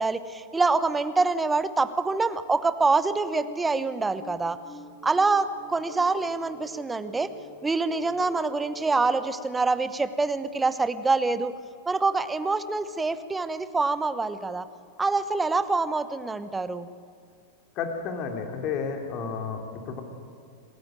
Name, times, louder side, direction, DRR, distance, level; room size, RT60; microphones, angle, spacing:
voice 1, 0.0-4.6 5.0-7.3 7.6-11.5 11.9-14.6 15.0-16.9, right 3 dB, 10° right, 13 dB, 1.0 m, -25 dB
sound 1, 3.2-9.4, right 1 dB, 20° left, 7.6 m, -46 dB
voice 2, 17.8-19.6 19.9-20.0, left 6 dB, 40° left, 4 dB, 2.9 m, -31 dB
26.5 x 14.5 x 9.1 m, 2.3 s
figure-of-eight pair, 90°, 0 cm